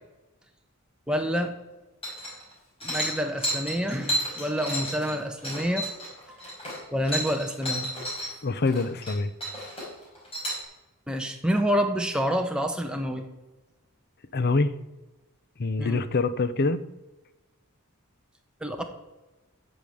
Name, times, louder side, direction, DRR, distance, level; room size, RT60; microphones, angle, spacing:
voice 1, 1.1-1.5 2.8-5.9 6.3-6.4 6.9-7.9 11.1-13.2 15.8-16.0 18.6-18.8, equal, 5° right, 4 dB, 1.1 m, -28 dB
sound 1, 2.0-2.5 2.8-8.3 8.6-9.1 9.4-10.6, equal, 25° left, 4.5 m, -32 dB
voice 2, 8.4-9.3 14.3-14.7 15.6-16.8, left 3 dB, 45° left, 14 dB, 0.6 m, -25 dB
8.5 x 7.1 x 7.8 m, 1.1 s
head